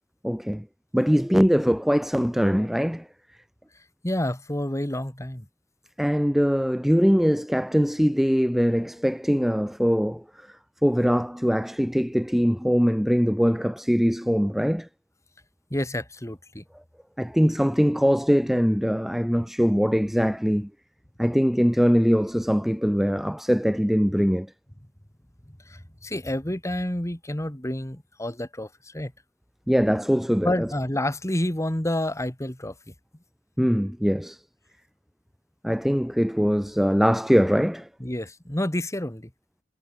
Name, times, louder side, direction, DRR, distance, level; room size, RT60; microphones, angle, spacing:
voice 1, 0.2-0.7 0.9-3.1 6.0-10.2 10.8-14.9 17.2-20.7 21.2-24.5 29.7-30.7 33.6-34.4 35.6-37.9, equal, ahead, 1.0 m, -22 dB
voice 2, 4.0-5.5 15.7-16.6 25.5-29.1 30.4-32.9 38.0-39.3, left 1 dB, 15° left, 2.0 m, -29 dB
head